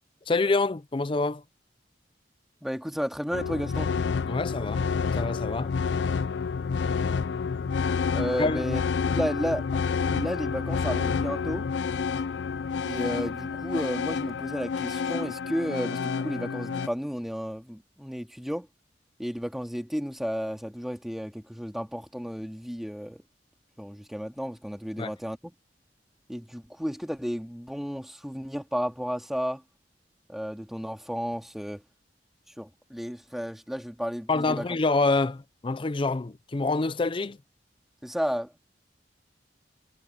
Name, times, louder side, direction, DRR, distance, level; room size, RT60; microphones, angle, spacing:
voice 1, 0.3-1.4 4.3-4.9 5.1-5.7 8.4-8.7 25.0-25.1 34.3-37.4, left 3 dB, 30° left, 0.5 m, -26 dB
voice 2, 2.6-3.9 7.5-7.6 8.1-9.6 10.1-11.7 12.8-18.7 19.2-23.2 23.8-25.5 26.3-29.6 30.3-31.8 32.6-34.6 38.0-38.6, equal, ahead, 2.2 m, -33 dB
sound 1, 3.3-16.9, left 5 dB, 90° left, 0.5 m, -29 dB
head